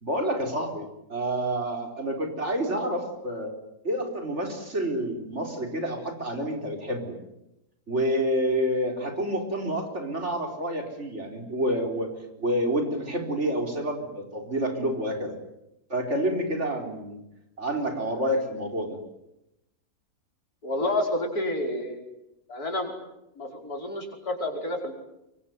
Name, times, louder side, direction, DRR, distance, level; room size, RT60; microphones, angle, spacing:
voice 1, 0.0-3.5 3.8-7.2 7.9-15.4 15.9-17.2 17.6-19.0, right 1 dB, 50° right, 4 dB, 4.6 m, -28 dB
voice 2, 20.6-22.0 22.5-22.9 23.4-24.9, left 1 dB, 80° left, 2 dB, 5.9 m, -29 dB
25.0 x 23.5 x 9.4 m, 0.88 s
omnidirectional pair, 1.6 m